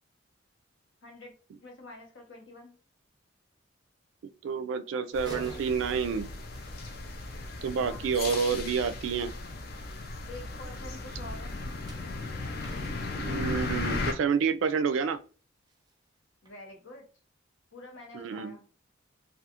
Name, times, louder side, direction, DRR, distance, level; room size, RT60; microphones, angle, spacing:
voice 1, 1.0-1.3 1.6-2.7 5.3-5.9 7.8-8.1 10.3-11.5 16.4-17.1 17.7-18.6, left 2 dB, 75° left, 0.9 m, -47 dB
voice 2, 4.4-6.3 7.6-9.3 13.2-15.2 18.1-18.6, right 6 dB, 75° right, 0.3 m, -29 dB
sound 1, 5.1-14.1, left 3 dB, 50° left, 0.5 m, -36 dB
sound 2, 5.1-7.7 11.5-15.3 15.7-15.9 16.5-16.6, right 1 dB, 20° right, 0.5 m, -50 dB
2.4 x 2.3 x 2.8 m
head